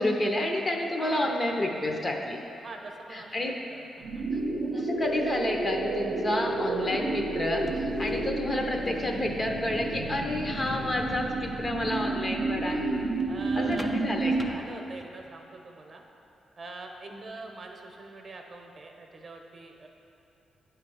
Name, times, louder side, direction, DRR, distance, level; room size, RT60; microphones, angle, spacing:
voice 1, 0.0-2.4 3.1-3.5 4.6-12.9 13.6-14.6 17.1-17.2, left 1 dB, 30° left, 1 dB, 0.8 m, -30 dB
voice 2, 1.0-1.3 2.6-4.4 13.3-13.9 14.3-16.0 16.6-19.9, right 3 dB, 45° right, 2 dB, 0.8 m, -43 dB
sound 1, 4.0-14.5, right 2 dB, 80° right, 0.6 m, -31 dB
sound 2, 7.6-15.3, equal, 5° left, 0.4 m, -43 dB
8.5 x 3.3 x 6.3 m, 2.8 s
cardioid pair, 90°, 0 cm